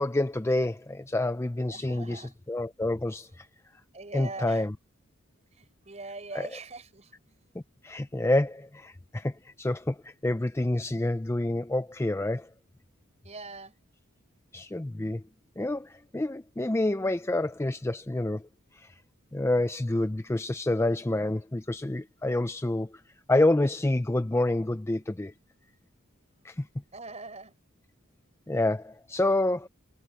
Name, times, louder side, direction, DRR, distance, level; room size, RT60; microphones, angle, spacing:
voice 1, 0.0-3.5 4.1-4.7 6.3-6.6 7.8-12.5 14.5-15.2 15.6-18.4 18.7-18.9 19.3-23.0 23.3-25.3 26.4-26.7 28.5-29.7, left 1 dB, 10° left, 0.4 m, -28 dB
voice 2, 1.7-2.3 3.9-4.6 5.5-7.4 13.2-13.7 26.9-27.5, right 3 dB, 30° right, 4.5 m, -42 dB
head